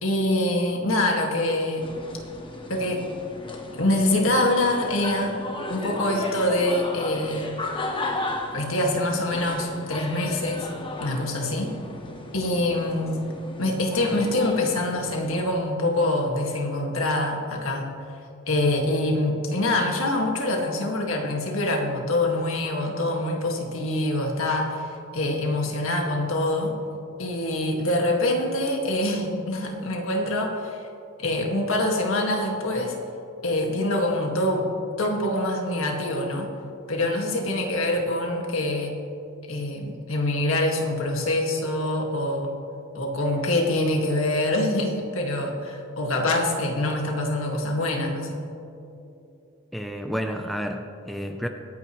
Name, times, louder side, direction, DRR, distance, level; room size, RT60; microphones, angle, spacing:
voice 1, 0.0-1.9 2.7-3.1 3.7-5.3 5.7-7.5 8.5-10.7 11.0-11.8 12.3-13.2 13.6-17.9 18.5-26.7 27.2-30.8 31.2-33.0 33.4-34.7 35.0-36.5 36.9-39.0 39.5-42.5 42.9-48.4, left 1 dB, 65° left, 1 dB, 1.9 m, -25 dB
sound 1, 1.8-15.4, left 2 dB, 25° left, 1.2 m, -35 dB
voice 2, 49.7-51.5, equal, ahead, 4 dB, 0.5 m, -30 dB
24.0 x 9.4 x 3.1 m, 2.8 s
head